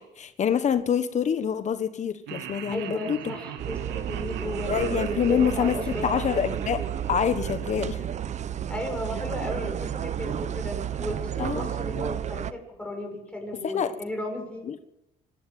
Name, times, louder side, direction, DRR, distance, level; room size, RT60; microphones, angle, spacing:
voice 1, 0.0-3.2 4.7-8.0 11.4-11.7 13.6-13.9 14.7-14.8, left 8 dB, 45° left, 11 dB, 1.3 m, -26 dB
Laughter, 2.3-8.5, right 10 dB, 85° right, 2.0 m, -41 dB
voice 2, 2.7-6.3 8.7-14.7, left 1 dB, 5° left, 2 dB, 6.8 m, -35 dB
sound 1, 3.6-12.5, right 9 dB, 45° right, 0.9 m, -31 dB
25.5 x 12.0 x 9.3 m, 0.87 s
cardioid pair, 110°, 17 cm